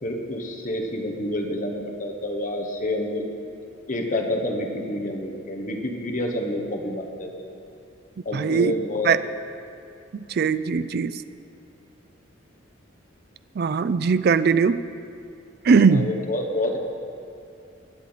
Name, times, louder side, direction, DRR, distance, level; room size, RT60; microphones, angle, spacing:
voice 1, 0.0-3.2 3.9-7.5 8.2-9.1 15.9-16.8, left 1 dB, 40° left, 2 dB, 1.3 m, -28 dB
voice 2, 8.3-8.7 9.0-9.2 10.1-11.2 13.6-14.8 15.6-16.1, right 5 dB, 55° right, 14 dB, 0.4 m, -20 dB
21.0 x 8.2 x 4.1 m, 2.5 s
head